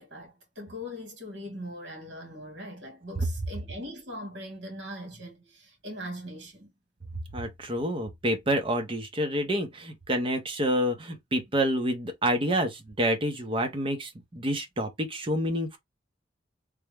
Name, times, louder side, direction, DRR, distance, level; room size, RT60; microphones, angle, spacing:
voice 1, 0.0-6.7, equal, 70° right, 1.7 m, -41 dB
voice 2, 7.3-15.8, equal, 30° right, 0.7 m, -28 dB
3.4 x 2.1 x 3.2 m
head